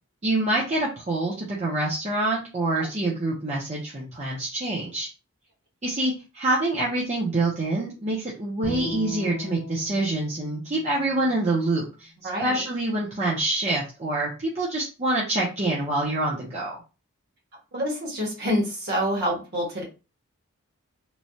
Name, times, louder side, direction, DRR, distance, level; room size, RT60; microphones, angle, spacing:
voice 1, 0.2-5.1 5.8-12.1 12.4-16.7, right 2 dB, 30° right, -5 dB, 0.7 m, -26 dB
Bowed string instrument, 8.6-11.9, left 1 dB, 50° left, 0.6 m, -38 dB
voice 2, 12.2-12.6 17.7-19.8, equal, 50° right, -2 dB, 1.2 m, -27 dB
3.1 x 2.3 x 2.7 m, 0.31 s
head